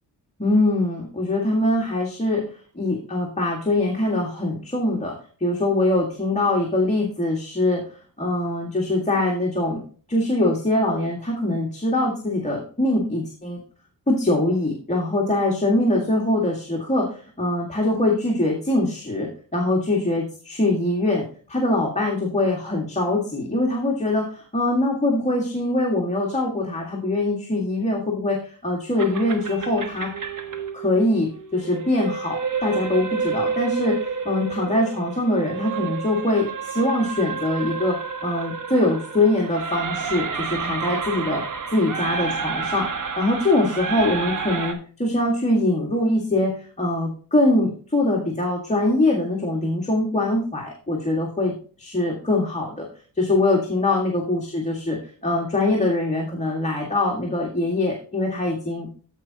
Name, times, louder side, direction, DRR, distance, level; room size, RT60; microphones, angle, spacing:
voice 1, 0.4-2.4 2.7-5.1 5.4-9.8 10.1-13.6 14.1-30.1 30.7-41.4 41.7-42.9 43.2-52.9 53.1-55.0 55.2-58.9, left 2 dB, 15° left, -2 dB, 1.8 m, -23 dB
sound 1, 29.0-44.7, right 5 dB, 50° right, 1.3 m, -30 dB
15.0 x 5.0 x 2.8 m, 0.41 s
wide cardioid pair, 140°, 39 cm